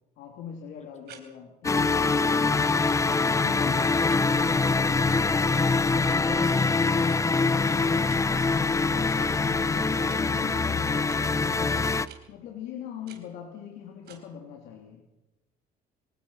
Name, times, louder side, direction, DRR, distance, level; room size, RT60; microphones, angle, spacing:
voice 1, 0.2-2.6 3.0-4.1 8.8-11.8 12.3-15.0, left 8 dB, 85° left, 1 dB, 3.2 m, -42 dB
sound 1, 1.1-1.2 2.1-2.2 3.1-3.2 4.1-4.2 5.1-5.2 6.1-6.2 7.1-7.2 8.1-8.2 9.0-9.2 10.0-10.2 11.1-11.2 12.0-12.2 13.1-13.2 14.0-14.2, right 10 dB, 75° right, 4.4 m, -48 dB
sound 2, 1.6-12.1, left 4 dB, 20° left, 0.7 m, -24 dB
voice 2, 3.2-4.5 6.0-8.1 13.0-13.2, left 4 dB, 45° left, 6 dB, 3.1 m, -43 dB
25.0 x 19.0 x 5.8 m, 1.0 s
cardioid pair, 110°, 17 cm